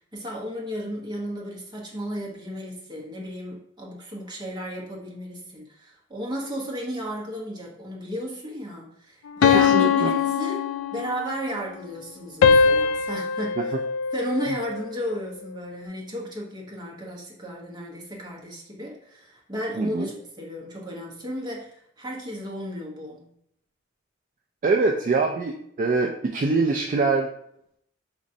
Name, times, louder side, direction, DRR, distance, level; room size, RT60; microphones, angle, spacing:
voice 1, 0.1-10.6 10.9-13.7 14.1-23.3, equal, 20° right, -3 dB, 0.9 m, -34 dB
sound 1, 9.4-11.4 12.4-14.8, left 6 dB, 75° left, 0.3 m, -21 dB
voice 2, 9.5-10.1 19.8-20.1 24.6-27.3, right 3 dB, 40° right, 1 dB, 0.3 m, -23 dB
5.1 x 3.1 x 2.6 m, 0.73 s
head